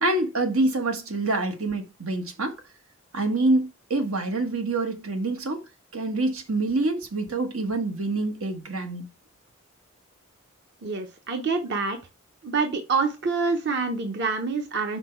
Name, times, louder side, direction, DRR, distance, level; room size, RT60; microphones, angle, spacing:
voice 1, 0.0-2.5 3.1-5.6 5.9-9.1, right 2 dB, 90° right, 1.4 m, -26 dB
voice 2, 10.8-12.0 12.4-15.0, right 4 dB, 55° right, 0.9 m, -26 dB
6.0 x 4.5 x 4.5 m
head